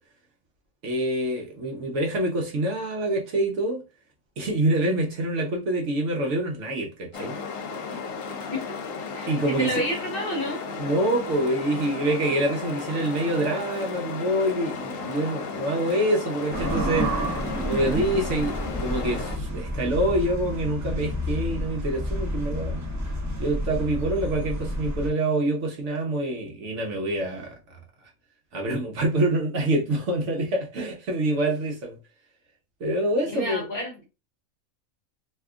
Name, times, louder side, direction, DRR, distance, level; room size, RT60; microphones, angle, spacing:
voice 1, 0.8-3.8 4.4-7.3 9.3-9.7 10.8-17.1 17.6-22.8 23.4-27.6 28.5-32.0 32.8-33.7, right 1 dB, 60° right, 0.9 m, -26 dB
sound 1, 7.1-19.4, left 5 dB, 70° left, 1.0 m, -34 dB
voice 2, 9.1-10.6 33.3-34.1, left 1 dB, 45° left, 0.9 m, -30 dB
sound 2, 16.5-25.1, equal, 25° right, 0.4 m, -30 dB
2.7 x 2.3 x 3.4 m
omnidirectional pair, 1.5 m